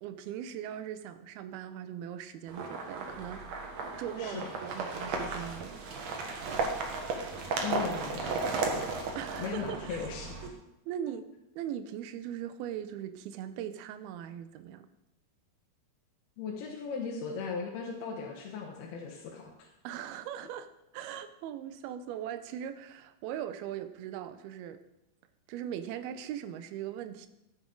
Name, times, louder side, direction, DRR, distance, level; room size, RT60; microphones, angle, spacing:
voice 1, 0.0-3.7 4.0-5.8 9.2-10.1 10.4-10.5 10.9-11.3 11.6-14.9 19.8-24.8 25.5-27.3, right 10 dB, 75° right, 10 dB, 2.4 m, -40 dB
sound 1, 2.5-10.5, right 4 dB, 60° right, 1.8 m, -35 dB
voice 2, 4.2-4.5 7.6-8.9 9.4-10.3 16.4-19.7, left 5 dB, 70° left, -2 dB, 3.0 m, -38 dB
14.5 x 9.5 x 3.8 m, 0.89 s
omnidirectional pair, 4.8 m